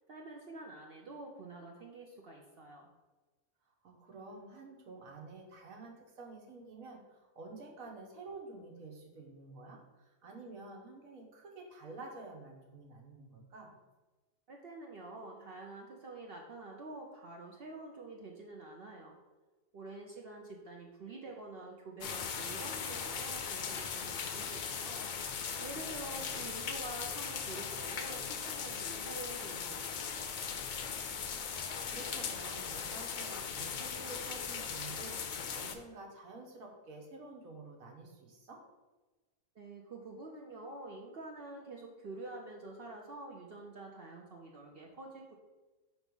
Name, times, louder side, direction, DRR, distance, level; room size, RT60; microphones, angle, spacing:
voice 1, 0.1-2.9 14.5-19.2 19.7-25.1 25.6-30.5 39.6-45.3, right 2 dB, 55° right, 0 dB, 0.7 m, -47 dB
voice 2, 3.8-13.7 25.9-26.7 31.7-38.6, right 3 dB, 75° right, 1 dB, 1.5 m, -50 dB
sound 1, 22.0-35.8, left 6 dB, 90° left, 0.4 m, -39 dB
4.7 x 4.1 x 5.3 m, 1.2 s
omnidirectional pair, 1.5 m